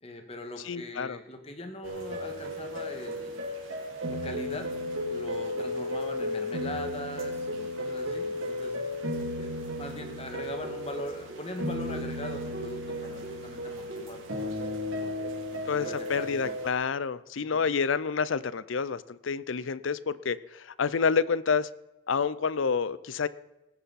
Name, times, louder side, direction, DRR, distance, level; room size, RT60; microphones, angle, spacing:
voice 1, 0.0-3.4 4.1-4.7 5.1-8.8 9.4-15.3 15.7-16.5 17.4-17.6, left 1 dB, 30° left, 5 dB, 1.7 m, -41 dB
voice 2, 0.6-1.2 15.7-21.7 22.1-23.3, left 5 dB, 75° left, 18 dB, 0.5 m, -28 dB
sound 1, 1.8-16.7, left 1 dB, 90° right, 2.9 m, -34 dB
18.0 x 10.0 x 4.2 m, 1.0 s
head